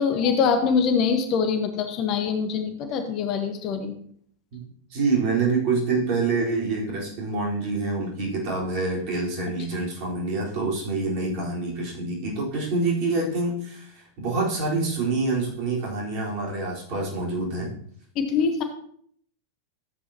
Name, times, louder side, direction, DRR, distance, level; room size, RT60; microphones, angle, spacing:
voice 1, 0.0-3.9 18.1-18.6, left 6 dB, 40° left, 6 dB, 1.2 m, -24 dB
voice 2, 4.9-17.7, right 3 dB, 45° right, -4 dB, 4.1 m, -26 dB
14.0 x 8.2 x 2.9 m, 0.62 s
figure-of-eight pair, 90°, 0 cm